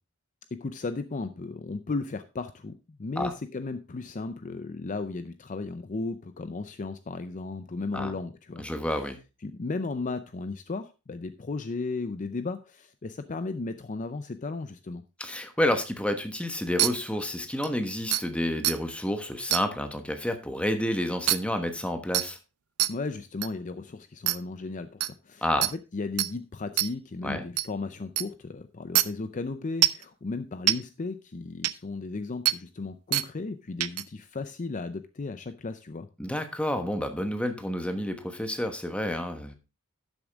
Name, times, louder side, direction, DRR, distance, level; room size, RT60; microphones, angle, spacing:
voice 1, 0.5-8.7 9.4-15.0 22.9-36.1, left 3 dB, 35° left, 11 dB, 0.5 m, -35 dB
voice 2, 8.6-9.2 15.2-22.4 25.4-25.7 27.2-27.4 36.2-39.5, left 1 dB, 5° left, 7 dB, 1.2 m, -29 dB
sound 1, 16.8-16.9 17.6-17.7 18.1-18.2 18.6-18.8 19.5-19.6 21.3-21.4 22.1-22.3 22.8-22.9 23.4-23.5 24.3-24.4 25.0-25.1 25.6-25.7 26.2-26.3 26.8-26.9 27.6-27.7 28.2-28.3 29.0-29.1 29.8-30.0 30.7-30.8 31.6-31.7 32.5-32.6 33.1-33.3 33.8-34.0, right 15 dB, 90° right, 0.6 m, -23 dB
12.0 x 7.1 x 3.5 m, 0.30 s
head